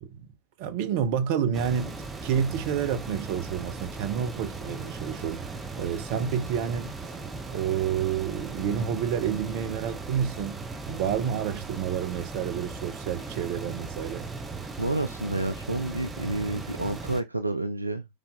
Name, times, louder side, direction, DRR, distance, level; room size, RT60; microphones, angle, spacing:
voice 1, 0.6-7.1 7.5-14.3, right 8 dB, 45° right, 1.1 m, -29 dB
sound 1, 1.5-17.2, right 3 dB, 10° right, 1.2 m, -38 dB
voice 2, 14.8-18.1, right 2 dB, 85° right, 0.6 m, -29 dB
5.1 x 5.1 x 3.8 m
figure-of-eight pair, 90°, 0 cm